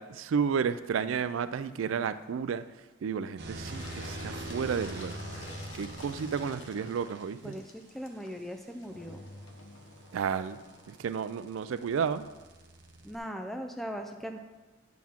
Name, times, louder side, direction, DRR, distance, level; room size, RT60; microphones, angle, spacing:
voice 1, 0.0-2.6 3.0-5.2 5.7-7.5 10.1-10.6 10.9-12.3, right 6 dB, 90° right, 12 dB, 0.4 m, -32 dB
sound 1, 3.4-7.2 9.5-13.2, right 2 dB, 60° right, 1.0 m, -44 dB
Engine, 3.6-11.0, left 1 dB, 90° left, 0.9 m, -46 dB
voice 2, 7.4-9.3 13.0-14.4, equal, ahead, 4 dB, 0.4 m, -39 dB
9.4 x 5.8 x 3.6 m, 1.2 s
head